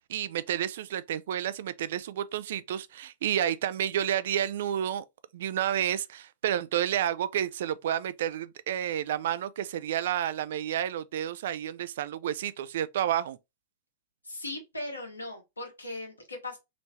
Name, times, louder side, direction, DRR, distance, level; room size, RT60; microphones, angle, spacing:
voice 1, 0.1-5.0 5.3-13.4, right 10 dB, 55° right, 0.3 m, -30 dB
voice 2, 14.2-16.6, left 2 dB, 80° left, 1.2 m, -38 dB
3.2 x 3.0 x 2.7 m
figure-of-eight pair, 100°, 0 cm